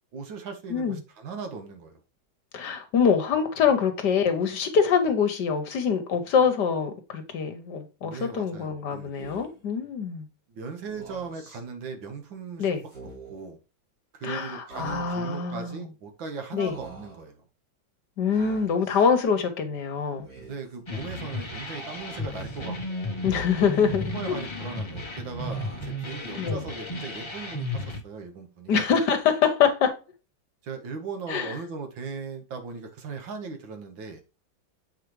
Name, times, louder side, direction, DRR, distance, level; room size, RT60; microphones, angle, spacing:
voice 1, 0.1-2.0 8.0-9.1 10.5-12.7 13.0-13.6 14.1-17.4 20.3-23.2 24.1-28.9 30.6-34.2, right 4 dB, 70° right, 1.9 m, -38 dB
voice 2, 2.5-10.3 12.6-12.8 14.2-15.8 16.5-16.7 18.2-20.3 23.2-24.4 26.4-26.6 28.7-29.9 31.3-31.5, left 6 dB, 65° left, 1.4 m, -24 dB
Speech, 9.1-9.6 10.8-11.6 12.8-13.5 14.7-15.4 16.6-17.3 18.3-19.1 20.1-20.8 21.9-22.6 23.5-24.3 25.5-26.2, right 2 dB, 55° right, 3.5 m, -47 dB
sound 1, 20.9-28.0, left 1 dB, 50° left, 0.3 m, -34 dB
7.5 x 4.8 x 3.1 m
omnidirectional pair, 2.2 m